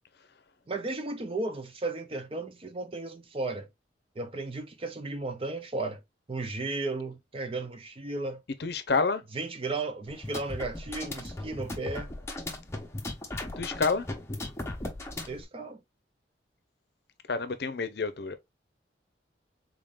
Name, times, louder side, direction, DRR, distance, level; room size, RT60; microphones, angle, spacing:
voice 1, 0.7-3.7 4.2-6.0 6.3-8.4 9.3-12.1 15.3-15.8, right 2 dB, 30° right, 0.5 m, -34 dB
voice 2, 8.6-9.2 13.6-14.1 17.3-18.4, left 4 dB, 60° left, 0.6 m, -28 dB
sound 1, 10.1-15.4, left 2 dB, 15° left, 0.7 m, -37 dB
3.7 x 3.6 x 2.4 m
head